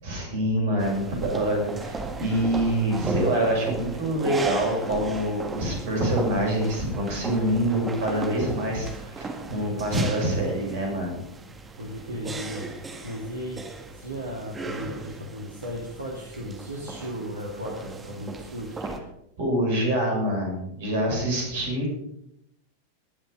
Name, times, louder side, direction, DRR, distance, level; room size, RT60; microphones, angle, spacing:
voice 1, 0.0-11.2 19.4-22.0, right 1 dB, 55° right, -1 dB, 6.9 m, -26 dB
sound 1, 0.8-19.0, right 3 dB, 15° right, 1.9 m, -36 dB
voice 2, 11.8-13.7 13.9-18.8, equal, 75° right, -1 dB, 2.4 m, -36 dB
20.0 x 7.2 x 5.2 m, 0.79 s
figure-of-eight pair, 90°, 0 cm